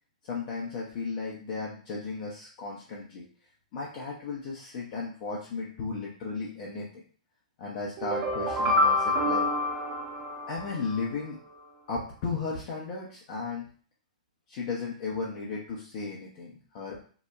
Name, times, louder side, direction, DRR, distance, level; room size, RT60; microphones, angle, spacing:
voice 1, 0.2-3.3 3.7-7.0 7.6-9.5 10.5-11.4 11.9-13.7 14.5-17.0, left 4 dB, 45° left, -3 dB, 0.5 m, -35 dB
sound 1, 8.0-11.0, left 2 dB, 30° right, 0.5 m, -27 dB
2.8 x 2.0 x 2.3 m, 0.43 s
figure-of-eight pair, 115°, 4 cm